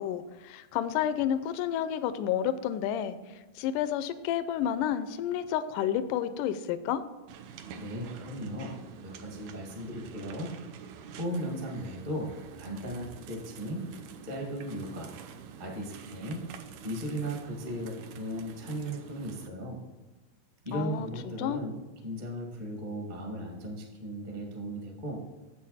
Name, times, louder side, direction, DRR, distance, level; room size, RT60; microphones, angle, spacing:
voice 1, 0.0-3.2 3.6-7.0 20.7-21.1 21.4-21.6, left 10 dB, 85° left, 12 dB, 1.9 m, -30 dB
sound 1, 7.3-19.5, right 7 dB, 75° right, 1.8 m, -47 dB
voice 2, 7.8-10.5 11.1-12.3 12.6-13.8 14.2-15.1 15.6-16.4 16.8-19.8 20.6-21.8 22.0-25.2, equal, 20° right, -1 dB, 1.1 m, -36 dB
8.5 x 7.9 x 4.1 m, 1.2 s
omnidirectional pair, 4.2 m